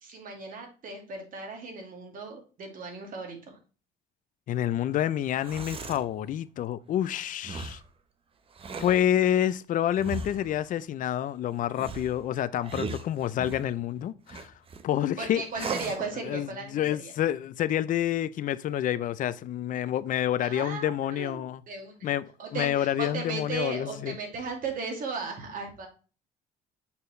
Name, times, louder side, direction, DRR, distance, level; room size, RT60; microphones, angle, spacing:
voice 1, 0.0-3.6 15.2-17.1 20.4-22.1 22.4-25.9, right 4 dB, 55° right, 2.4 m, -36 dB
voice 2, 4.5-7.8 8.8-14.5 14.8-15.8 16.2-21.6 22.0-24.2, left 11 dB, 50° left, 0.5 m, -28 dB
sound 1, 5.2-6.1 7.4-7.9 8.5-9.1 10.0-10.6 11.7-13.7 14.3-14.8 15.5-16.1, right 4 dB, 35° right, 0.8 m, -38 dB
6.9 x 4.4 x 3.1 m
cardioid pair, 110°, 17 cm